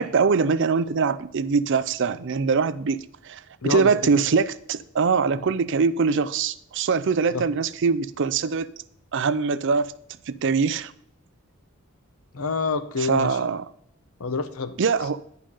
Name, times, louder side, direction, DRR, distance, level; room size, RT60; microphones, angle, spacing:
voice 1, 0.0-8.7 9.1-9.9 10.3-10.9 13.0-13.6 14.8-15.2, right 5 dB, 55° right, 0.5 m, -23 dB
voice 2, 3.6-3.9 7.3-7.4 12.3-13.4 14.2-14.7, left 4 dB, 75° left, 0.9 m, -27 dB
10.0 x 5.5 x 5.4 m
head